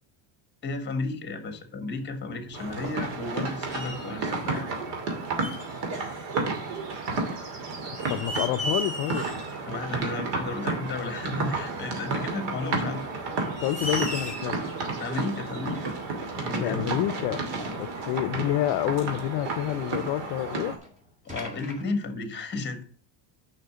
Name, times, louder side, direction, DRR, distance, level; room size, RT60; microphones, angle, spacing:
voice 1, 0.6-4.7 9.7-13.1 15.0-15.9 16.4-16.9 21.2-22.8, left 3 dB, 20° left, 1.5 m, -33 dB
sound 1, 2.5-3.4 3.7-4.1 5.4-5.8 7.2-7.3 7.8-9.6 9.9-10.0 11.5-11.6 12.6-12.7 13.2-13.3 13.5-14.6 15.9-16.0 16.8-16.9 17.1-17.2 17.9-18.1 19.4-20.4 20.8-20.9 21.3-21.8, equal, 15° right, 2.4 m, -36 dB
sound 2, 2.5-20.8, right 3 dB, 55° right, 2.6 m, -32 dB
voice 2, 8.1-9.3 13.6-14.6 16.6-17.4 17.7-20.8, left 14 dB, 55° left, 0.6 m, -28 dB
6.6 x 5.8 x 6.7 m
cardioid pair, 150°, 50 cm